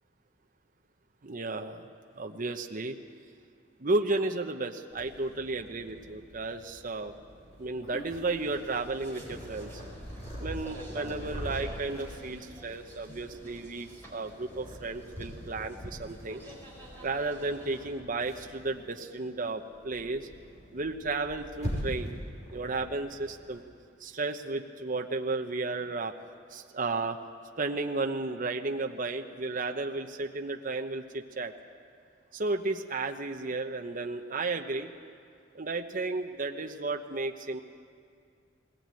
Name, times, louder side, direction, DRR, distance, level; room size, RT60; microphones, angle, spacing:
voice 1, 1.2-1.9 2.2-3.0 3.8-7.1 7.6-9.7 10.4-16.4 17.0-20.3 20.7-22.1 22.5-23.6 24.0-26.1 26.5-27.2 27.6-31.5 32.3-34.9 35.5-37.6, right 3 dB, 45° right, 4 dB, 0.9 m, -33 dB
Purr, 4.9-23.6, equal, 40° left, 5.3 m, -43 dB
sound 1, 8.4-17.9, equal, 10° left, 4.6 m, -50 dB
20.5 x 18.0 x 9.0 m, 2.2 s
head